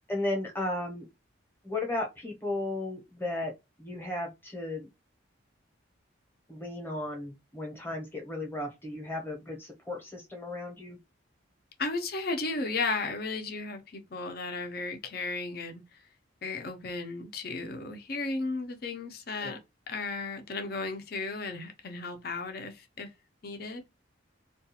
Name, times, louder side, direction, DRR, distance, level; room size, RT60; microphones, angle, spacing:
voice 1, 0.1-1.1 1.6-3.5 3.8-4.9 6.5-11.0 19.4-19.5, left 2 dB, 10° left, 0.8 m, -35 dB
voice 2, 11.8-15.8 16.4-19.6 19.9-23.1 23.4-23.8, left 3 dB, 50° left, 0.5 m, -34 dB
2.3 x 2.3 x 2.7 m
head